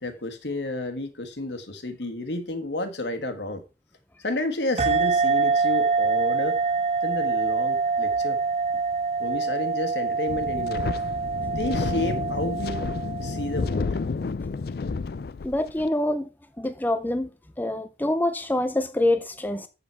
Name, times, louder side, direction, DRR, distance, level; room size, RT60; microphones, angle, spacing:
voice 1, 0.0-3.6 4.2-6.6 7.0-8.4 9.2-11.0 11.5-12.8 13.2-13.9, left 2 dB, 75° left, 1.6 m, -31 dB
sound 1, 4.8-13.8, right 4 dB, 35° right, 0.6 m, -25 dB
Wind, 10.3-15.9, left 4 dB, 60° left, 0.4 m, -30 dB
voice 2, 15.4-16.3 16.6-17.3 17.6-19.7, left 1 dB, 10° left, 0.6 m, -25 dB
7.6 x 7.0 x 4.6 m
head